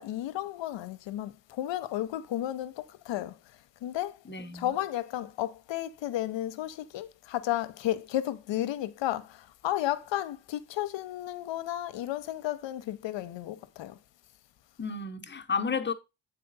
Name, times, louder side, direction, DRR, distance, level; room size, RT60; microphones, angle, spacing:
voice 1, 0.0-3.4 3.8-4.2 4.5-14.0, left 13 dB, 70° left, 0.8 m, -33 dB
voice 2, 4.2-4.7 14.8-15.9, left 5 dB, 25° left, 0.9 m, -32 dB
7.6 x 4.1 x 4.0 m
supercardioid pair, 50°, 45 cm